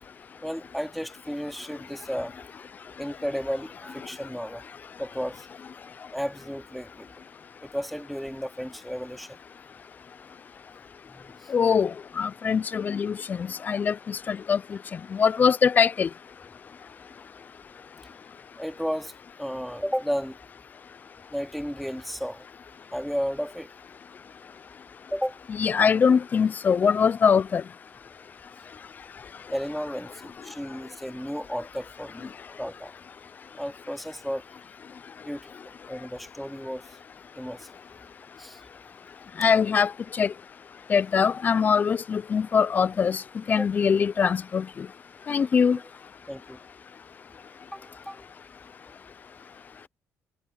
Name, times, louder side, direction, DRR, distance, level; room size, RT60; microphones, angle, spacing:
voice 1, 0.4-2.4 3.0-4.6 5.0-5.5 6.1-7.1 7.6-9.4 11.1-11.5 18.6-19.1 19.4-20.4 21.3-22.5 22.9-23.7 25.1-25.4 29.5-32.9 33.6-34.4 35.2-36.8 37.3-37.8 38.4-38.6 43.6-43.7 45.7-45.8 46.3-46.6 47.7-48.3, equal, ahead, 2.8 m, -33 dB
voice 2, 11.5-14.8 15.1-16.1 25.6-27.6 39.4-40.3 40.9-43.2 43.5-44.9 45.3-45.8, left 6 dB, 30° left, 0.4 m, -23 dB
cardioid pair, 120°, 5 cm